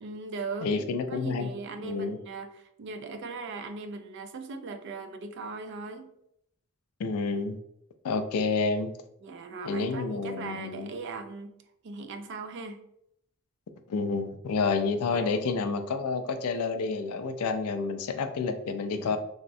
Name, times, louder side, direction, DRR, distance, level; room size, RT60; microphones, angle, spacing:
voice 1, 0.0-6.1 9.2-11.5 11.8-12.8 15.1-15.4 18.9-19.2, right 3 dB, 50° right, 8 dB, 0.3 m, -39 dB
voice 2, 0.6-1.5 1.8-2.2 7.0-7.6 8.0-8.9 9.7-10.9 13.9-19.2, left 4 dB, 80° left, 8 dB, 0.3 m, -29 dB
3.4 x 2.0 x 2.6 m, 0.76 s
head